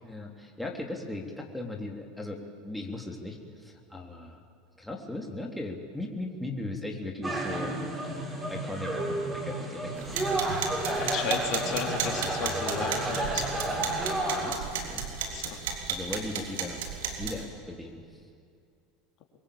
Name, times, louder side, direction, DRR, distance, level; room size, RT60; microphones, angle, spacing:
voice 1, 0.0-4.4 4.8-7.7 8.5-10.8 14.0-15.1 15.9-16.9 17.2-17.9, left 2 dB, 5° left, 0 dB, 3.4 m, -38 dB
sound 1, 7.2-14.5, right 1 dB, 20° right, 7.3 m, -31 dB
sound 2, 10.0-17.4, right 6 dB, 75° right, 3.5 m, -34 dB
voice 2, 11.0-13.9 15.2-15.6, left 7 dB, 55° left, 2 dB, 3.9 m, -35 dB
23.5 x 21.5 x 8.7 m, 2.3 s
hypercardioid pair, 85°, 0 cm